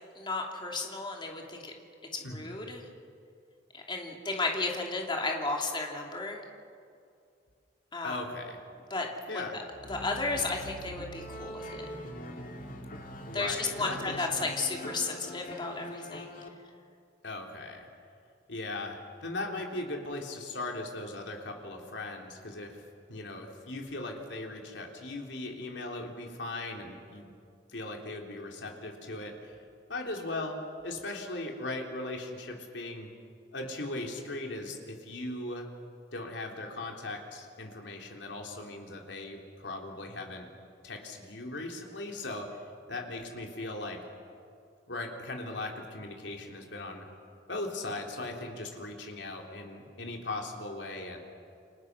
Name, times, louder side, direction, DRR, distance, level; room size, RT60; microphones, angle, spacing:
voice 1, 0.1-1.7 2.1-2.9 3.7-6.4 7.9-8.2 8.9-9.6 9.9-11.9 13.3-16.4, left 3 dB, 25° left, 1 dB, 3.1 m, -33 dB
voice 2, 8.0-8.6 9.3-9.6 13.2-14.5 17.2-17.9 18.5-22.8 23.1-27.3 27.7-29.6 29.9-33.1 33.5-35.7 36.1-40.5 40.8-42.5 42.9-44.1 44.9-47.1 47.5-51.2, left 2 dB, 75° left, 1 dB, 3.7 m, -38 dB
sound 1, 9.7-16.5, equal, 50° left, 2.6 m, -43 dB
29.0 x 25.0 x 6.3 m, 2.4 s
head